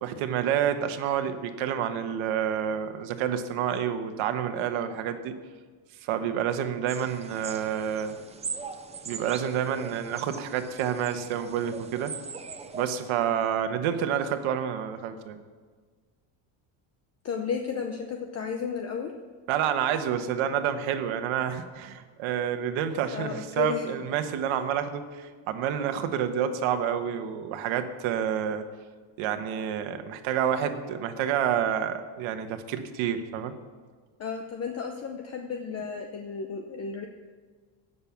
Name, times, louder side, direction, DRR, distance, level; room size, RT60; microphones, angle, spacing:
voice 1, 0.0-5.3 6.0-8.2 9.0-12.2 12.7-15.4 19.5-28.6 29.2-33.5, right 9 dB, 75° right, 8 dB, 1.3 m, -29 dB
sound 1, 6.9-12.9, right 5 dB, 15° right, 0.3 m, -40 dB
voice 2, 17.2-19.1 23.1-23.9 24.4-24.6 34.2-37.0, left 6 dB, 30° left, 4 dB, 0.7 m, -33 dB
16.5 x 6.8 x 7.1 m, 1.5 s
cardioid pair, 170°, 49 cm